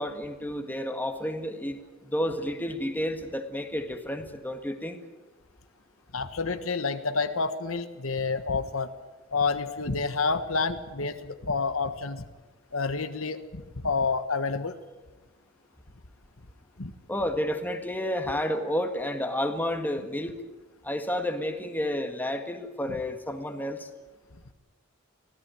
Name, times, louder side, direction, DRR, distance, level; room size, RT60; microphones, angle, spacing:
voice 1, 0.0-5.0 17.1-20.3 20.8-23.9, left 1 dB, 10° left, 6 dB, 1.8 m, -31 dB
voice 2, 6.1-8.9 9.3-12.2 12.7-14.8 16.8-16.9, left 4 dB, 75° left, 9 dB, 1.4 m, -29 dB
24.5 x 17.0 x 9.1 m, 1.2 s
head